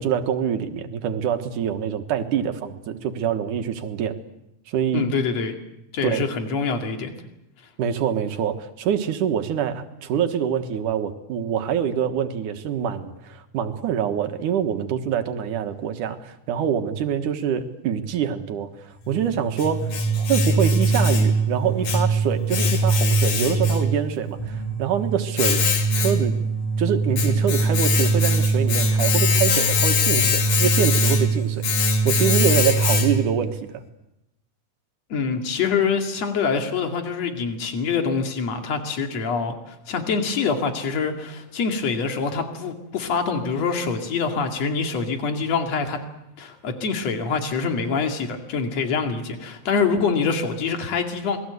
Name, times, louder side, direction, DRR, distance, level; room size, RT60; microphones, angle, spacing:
voice 1, 0.0-4.2 4.7-5.1 6.0-6.2 7.8-25.6 25.9-26.3 26.8-33.8, right 8 dB, 85° right, 8 dB, 3.0 m, -25 dB
voice 2, 4.9-5.5 5.9-7.1 35.1-46.0 46.4-51.4, left 5 dB, 60° left, 4 dB, 3.5 m, -25 dB
Domestic sounds home sounds, 19.1-33.4, equal, 80° left, 3.7 m, -21 dB
27.5 x 21.0 x 8.1 m, 0.88 s
omnidirectional pair, 3.5 m